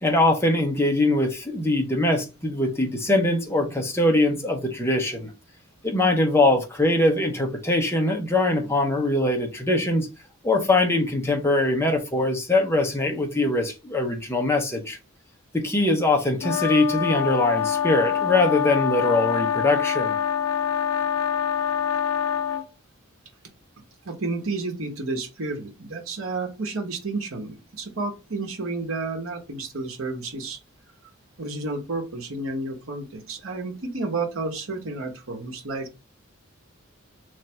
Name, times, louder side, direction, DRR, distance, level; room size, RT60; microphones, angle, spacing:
voice 1, 0.0-5.3 5.8-10.1 10.4-15.0 15.5-20.2, left 2 dB, 10° left, 0.8 m, -22 dB
sound 1, 16.4-22.6, left 9 dB, 85° left, 0.4 m, -25 dB
voice 2, 24.0-30.6 31.4-36.0, right 3 dB, 75° right, 1.0 m, -31 dB
3.2 x 2.6 x 4.4 m
head